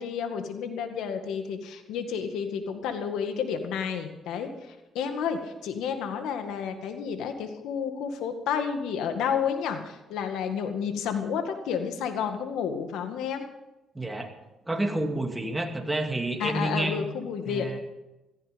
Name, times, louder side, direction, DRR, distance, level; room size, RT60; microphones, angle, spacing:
voice 1, 0.0-13.4 16.4-17.8, left 7 dB, 90° left, 7 dB, 2.0 m, -31 dB
voice 2, 13.9-14.3 14.7-17.0 17.5-17.8, right 1 dB, 15° right, 4 dB, 2.5 m, -29 dB
16.5 x 14.5 x 5.3 m, 0.99 s
cardioid pair, 90°, 0 cm